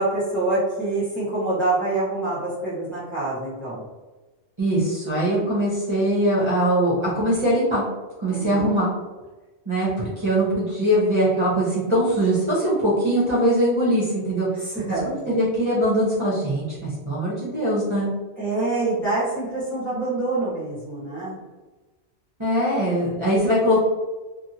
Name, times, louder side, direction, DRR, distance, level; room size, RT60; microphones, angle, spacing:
voice 1, 0.0-3.8 8.3-8.8 14.6-15.4 18.4-21.4, right 2 dB, ahead, -12 dB, 1.0 m, -26 dB
voice 2, 4.6-7.8 8.2-8.9 9.7-14.5 15.0-18.1 22.4-23.8, equal, 30° right, -7 dB, 0.9 m, -21 dB
2.9 x 2.6 x 2.8 m, 1.2 s
omnidirectional pair, 1.2 m